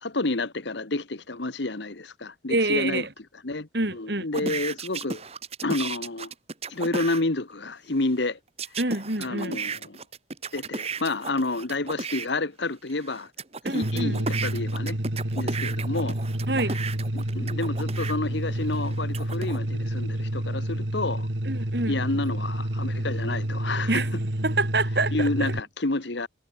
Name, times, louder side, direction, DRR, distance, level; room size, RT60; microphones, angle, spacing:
voice 1, 0.0-3.0 3.4-5.2 5.6-6.3 6.7-8.4 9.2-10.0 10.5-13.3 13.7-15.0 15.3-16.2 17.1-21.3 21.9-24.0 25.1-26.3, left 2 dB, 70° left, 1.4 m, -29 dB
voice 2, 2.5-3.1 3.7-4.5 8.8-9.6 13.6-14.3 16.5-16.8 17.4-17.5 21.4-22.0 23.9-24.1 24.4-25.6, right 2 dB, 60° right, 4.4 m, -27 dB
sound 1, 4.3-7.2 8.6-12.3 12.9-18.2 18.7-19.6, right 4 dB, 30° right, 2.2 m, -34 dB
sound 2, 13.8-25.6, right 1 dB, 75° right, 2.6 m, -29 dB
head